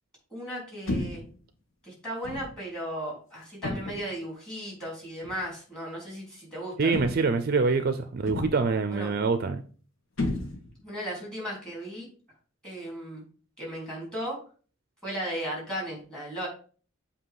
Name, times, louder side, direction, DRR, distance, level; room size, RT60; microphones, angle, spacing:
voice 1, 0.3-1.2 1.8-7.0 8.9-9.1 10.8-12.1 12.6-13.2 13.6-14.4 15.0-16.5, equal, 5° left, 3.0 m, -36 dB
sound 1, 0.9-1.3 2.2-2.6 3.6-4.1 5.2-5.4 6.9-7.4 8.3-8.8 10.2-10.9, left 2 dB, 70° left, 1.2 m, -32 dB
voice 2, 6.8-9.6, right 4 dB, 50° right, 0.4 m, -25 dB
7.6 x 2.8 x 4.7 m
head